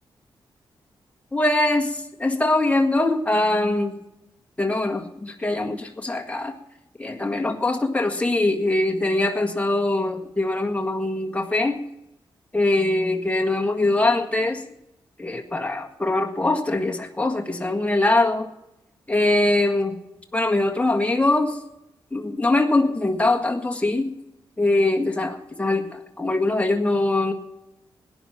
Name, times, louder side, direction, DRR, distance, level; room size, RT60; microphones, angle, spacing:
voice 1, 1.3-4.0 4.6-6.5 7.0-11.8 12.5-14.6 15.2-18.5 19.1-20.0 20.3-21.6 22.1-24.1 24.6-27.3, left 2 dB, 15° left, 2 dB, 1.8 m, -22 dB
17.5 x 10.5 x 6.0 m, 0.89 s
cardioid pair, 70°, 9 cm